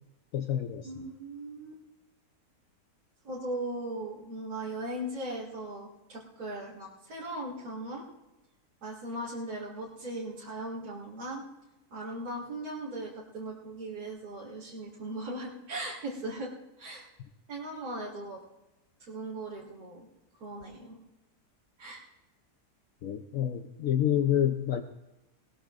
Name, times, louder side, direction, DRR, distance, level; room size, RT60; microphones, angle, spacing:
voice 1, 0.3-1.1 23.0-24.8, left 10 dB, 65° left, 7 dB, 1.0 m, -28 dB
voice 2, 0.8-1.8 3.2-8.0 8.8-11.4 11.9-16.5 16.8-17.0 17.5-18.4 19.1-20.1 20.4-21.0 21.8-22.0, right 1 dB, 65° right, -7 dB, 2.7 m, -38 dB
19.5 x 19.5 x 2.5 m, 0.98 s
omnidirectional pair, 1.7 m